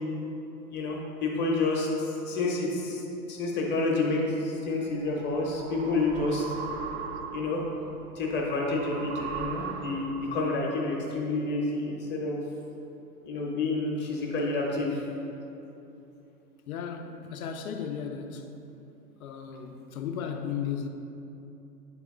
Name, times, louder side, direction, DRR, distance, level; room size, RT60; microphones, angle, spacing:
voice 1, 0.7-3.0 3.3-6.4 7.3-7.6 8.2-12.4 13.2-15.0, left 2 dB, 20° left, 0.9 m, -29 dB
sound 1, 4.7-10.5, right 6 dB, 45° right, 0.5 m, -39 dB
voice 2, 16.7-18.5 19.2-20.9, left 7 dB, 60° left, 0.7 m, -35 dB
8.3 x 3.5 x 3.7 m
figure-of-eight pair, 100°, 47 cm